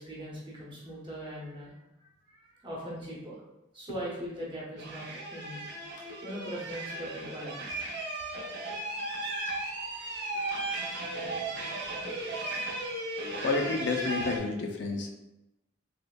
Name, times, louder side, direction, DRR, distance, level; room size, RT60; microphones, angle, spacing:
voice 1, 0.0-1.7 2.0-3.4 3.7-5.6 6.2-7.5 9.9-11.4, equal, 25° right, -6 dB, 0.9 m, -41 dB
sound 1, 4.8-14.4, right 2 dB, 55° right, 0.6 m, -36 dB
voice 2, 13.4-15.1, left 3 dB, 55° left, 2 dB, 0.4 m, -30 dB
3.3 x 3.0 x 2.2 m, 0.93 s
head